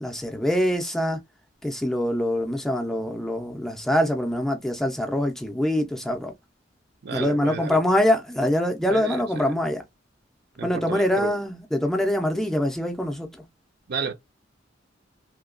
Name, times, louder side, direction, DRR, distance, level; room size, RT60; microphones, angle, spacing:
voice 1, 0.0-1.2 1.6-6.3 7.1-9.8 10.6-13.4, left 1 dB, ahead, 0.4 m, -24 dB
voice 2, 7.0-7.8 8.9-9.5 10.6-11.4 13.9-14.1, right 5 dB, 60° right, 0.5 m, -32 dB
2.8 x 2.2 x 2.3 m
head